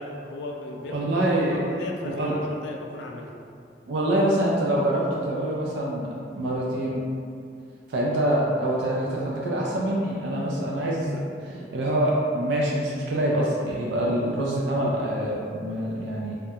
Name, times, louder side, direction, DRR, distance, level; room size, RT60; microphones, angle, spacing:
voice 1, 0.0-1.0 1.3-3.3 10.7-10.9, left 2 dB, 70° left, 1 dB, 0.3 m, -36 dB
voice 2, 0.9-1.6 2.1-2.4 3.9-6.1 6.3-7.0 7.9-16.3, right 1 dB, 70° right, -4 dB, 0.3 m, -25 dB
2.3 x 2.1 x 2.7 m, 2.3 s
head